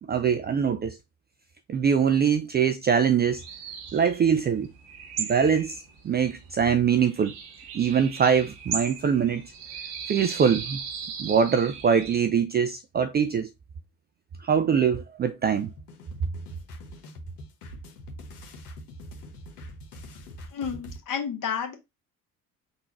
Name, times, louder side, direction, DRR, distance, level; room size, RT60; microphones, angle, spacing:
voice 1, 0.1-1.0 1.7-3.4 3.9-4.7 5.2-5.8 6.0-7.3 7.7-9.4 10.1-10.8 11.2-13.5 14.4-15.7, right 7 dB, 20° right, 0.4 m, -23 dB
sound 1, 3.3-12.2, right 6 dB, 60° right, 1.1 m, -38 dB
sound 2, 15.4-21.0, equal, 75° left, 1.2 m, -43 dB
voice 2, 20.5-21.7, left 7 dB, 45° left, 1.6 m, -31 dB
3.9 x 2.5 x 4.5 m
figure-of-eight pair, 55°, 47 cm